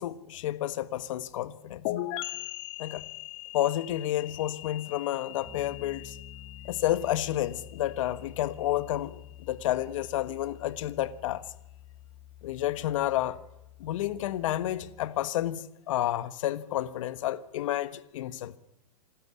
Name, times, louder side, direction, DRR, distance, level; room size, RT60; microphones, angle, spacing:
voice 1, 0.0-1.8 2.8-3.0 3.5-6.2 6.6-11.4 12.4-13.4 13.8-18.5, left 13 dB, 55° left, 1.5 m, -30 dB
sound 1, 1.8-9.4, left 15 dB, 40° left, 1.7 m, -40 dB
Piano, 5.4-15.1, left 10 dB, 10° left, 2.3 m, -49 dB
27.0 x 13.5 x 9.8 m
hypercardioid pair, 150°, 20 cm